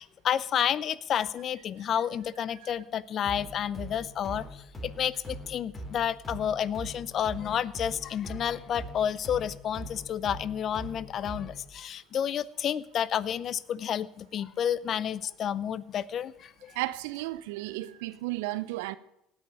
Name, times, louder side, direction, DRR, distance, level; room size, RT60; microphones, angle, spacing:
voice 1, 0.0-16.7, left 9 dB, 50° left, 0.7 m, -30 dB
sound 1, 3.2-11.7, equal, 20° left, 4.1 m, -42 dB
voice 2, 16.7-19.0, right 17 dB, 75° right, 0.7 m, -34 dB
17.5 x 6.5 x 8.9 m
hypercardioid pair, 70°, 0 cm